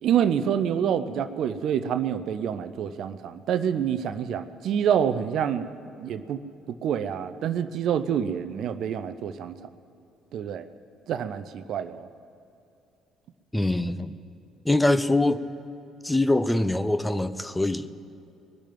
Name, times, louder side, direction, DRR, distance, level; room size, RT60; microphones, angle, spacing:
voice 1, 0.0-5.7 6.0-6.4 6.8-9.7 10.3-10.7 11.1-12.1, right 8 dB, 60° right, 12 dB, 0.5 m, -27 dB
voice 2, 13.5-14.2 14.6-15.4 16.0-17.9, left 2 dB, 10° left, 12 dB, 0.7 m, -23 dB
21.0 x 7.3 x 9.2 m, 2.7 s
figure-of-eight pair, 50°, 0 cm